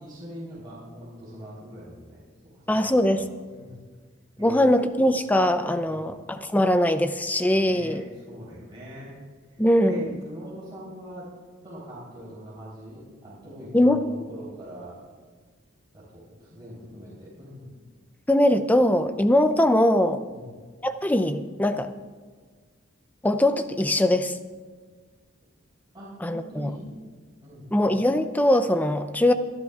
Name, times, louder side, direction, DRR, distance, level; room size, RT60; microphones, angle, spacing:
voice 1, 0.0-2.2 2.5-3.2 3.5-3.8 4.4-4.8 5.9-6.2 7.7-9.1 9.5-11.3 11.6-15.0 15.9-17.8 20.3-20.5 25.9-26.9 27.4-27.7, equal, 25° right, -9 dB, 3.5 m, -42 dB
voice 2, 2.7-3.2 4.4-8.0 9.6-10.1 13.7-14.1 18.3-20.2 20.8-22.0 23.2-24.4 26.2-26.7 27.7-29.3, left 1 dB, 10° left, 9 dB, 0.5 m, -21 dB
24.0 x 11.0 x 2.4 m, 1.5 s
head